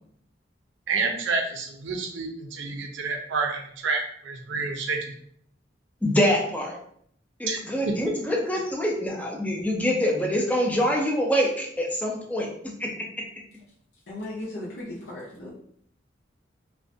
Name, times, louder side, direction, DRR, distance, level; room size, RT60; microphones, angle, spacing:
voice 1, 0.9-5.1 7.5-7.6, right 4 dB, 75° right, 3 dB, 0.5 m, -29 dB
voice 2, 6.0-6.8 7.4-13.3, equal, 10° left, 0 dB, 0.3 m, -25 dB
voice 3, 14.1-15.5, left 1 dB, 60° left, -6 dB, 0.5 m, -36 dB
2.4 x 2.1 x 2.6 m, 0.66 s
head